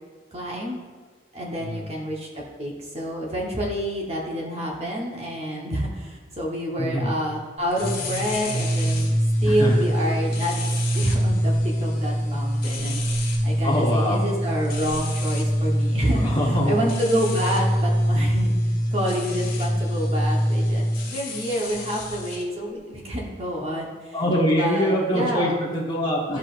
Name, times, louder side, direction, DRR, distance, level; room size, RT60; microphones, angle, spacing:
voice 1, 0.3-0.8 1.3-10.6 10.9-16.3 16.6-18.5 18.9-24.1 24.6-25.6 26.3-26.4, equal, 30° right, -2 dB, 1.0 m, -28 dB
voice 2, 1.6-1.9 6.8-7.1 9.4-9.8 13.6-14.2 16.1-16.7 24.1-26.4, equal, 25° left, -3 dB, 1.1 m, -24 dB
sound 1, 7.7-22.4, equal, 45° left, 1.6 m, -24 dB
12.5 x 4.8 x 2.5 m, 1.4 s
head